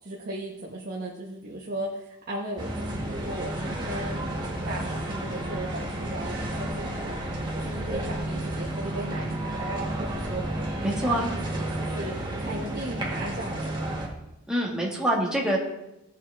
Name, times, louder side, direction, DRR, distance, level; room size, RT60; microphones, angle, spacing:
voice 1, 0.0-7.2 7.5-10.4 10.8-13.9, right 1 dB, 45° right, -3 dB, 1.2 m, -37 dB
sound 1, 2.6-14.1, right 1 dB, 20° right, 1.8 m, -31 dB
voice 2, 10.8-11.3 14.5-15.6, right 1 dB, 5° right, -3 dB, 1.9 m, -25 dB
16.5 x 7.3 x 3.5 m, 0.91 s
head